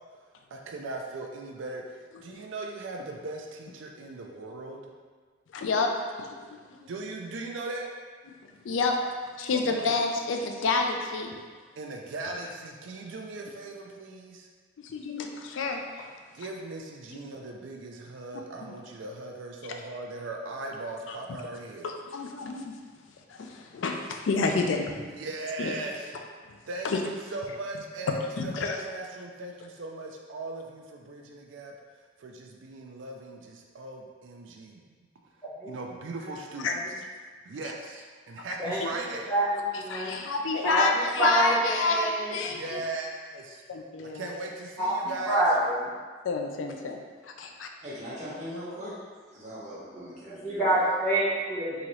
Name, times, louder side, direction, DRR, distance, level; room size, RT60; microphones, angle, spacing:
voice 1, 0.5-4.9 6.9-7.9 9.5-9.8 10.6-10.7 11.7-14.5 16.3-21.9 25.0-26.1 26.7-34.9 35.6-36.9 37.4-39.3 42.5-43.6 44.0-45.4, right 2 dB, 75° right, 1 dB, 0.4 m, -39 dB
voice 2, 5.5-6.9 8.6-9.0 9.4-11.4 14.8-16.1 21.1-21.2 21.8-22.7 23.3-25.1 25.6-25.7 26.5-26.6 26.8-27.0 28.1-28.8 36.6-36.7 39.9-42.8 43.7-44.2 46.2-47.7, left 3 dB, 75° left, 3 dB, 0.4 m, -29 dB
voice 3, 39.3-40.1 40.6-42.4 44.8-44.9 45.3-45.8 50.3-51.9, right 1 dB, 15° left, -10 dB, 1.1 m, -27 dB
voice 4, 47.8-50.9, equal, 35° right, -8 dB, 1.0 m, -40 dB
3.9 x 2.9 x 3.1 m, 1.5 s
head